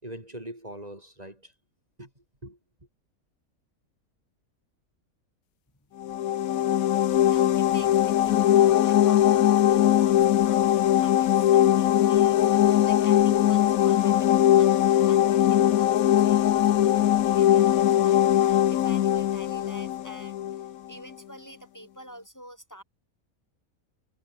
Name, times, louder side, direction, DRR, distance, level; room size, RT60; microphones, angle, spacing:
voice 1, 0.0-1.5 2.0-2.6, right 1 dB, 25° right, 4.9 m, -42 dB
sound 1, 6.0-20.7, left 12 dB, 75° left, 1.2 m, -21 dB
voice 2, 7.1-22.8, equal, 10° left, 4.8 m, -47 dB
omnidirectional pair, 1.5 m